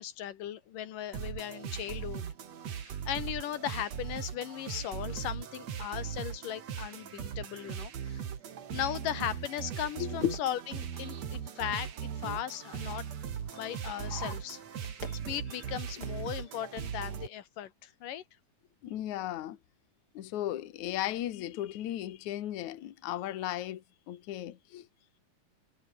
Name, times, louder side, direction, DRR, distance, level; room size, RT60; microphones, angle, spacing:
voice 1, 0.0-2.2 2.8-8.2 8.7-11.9 12.2-13.1 13.5-14.6 14.9-15.0 15.3-18.2, left 11 dB, 85° left, 3.2 m, -37 dB
sound 1, 1.1-17.3, right 8 dB, 55° right, 3.1 m, -39 dB
sound 2, 8.5-16.2, left 2 dB, 30° left, 6.4 m, -51 dB
voice 2, 10.0-10.3 15.1-15.2 18.8-19.6 20.1-24.9, left 13 dB, 65° left, 2.7 m, -35 dB
omnidirectional pair, 3.8 m